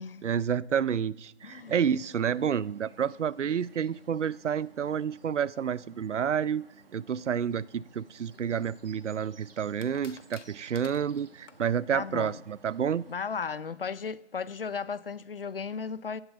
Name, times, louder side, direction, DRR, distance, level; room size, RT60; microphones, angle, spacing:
voice 1, 0.2-6.6 6.9-13.0, right 8 dB, 80° right, 0.6 m, -29 dB
voice 2, 1.4-1.8 11.9-12.4 13.1-16.2, left 5 dB, 55° left, 0.7 m, -35 dB
sound 1, 1.4-13.2, right 4 dB, 55° right, 1.9 m, -57 dB
sound 2, 8.3-9.2 9.8-11.8, left 5 dB, 80° left, 1.3 m, -52 dB
16.5 x 11.0 x 6.5 m
hypercardioid pair, 170°, 35 cm